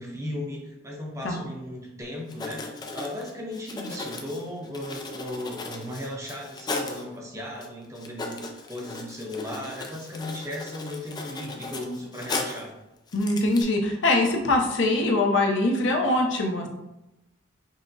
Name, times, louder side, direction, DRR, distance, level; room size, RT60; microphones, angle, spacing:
voice 1, 0.0-12.7, left 1 dB, 15° right, -2 dB, 0.6 m, -36 dB
Writing, 2.3-7.0 7.6-7.7 8.0-12.7 13.1-13.6, left 3 dB, 20° left, 0.3 m, -36 dB
voice 2, 13.1-16.7, left 2 dB, 70° left, 2 dB, 0.6 m, -23 dB
5.4 x 2.0 x 2.6 m, 0.94 s
head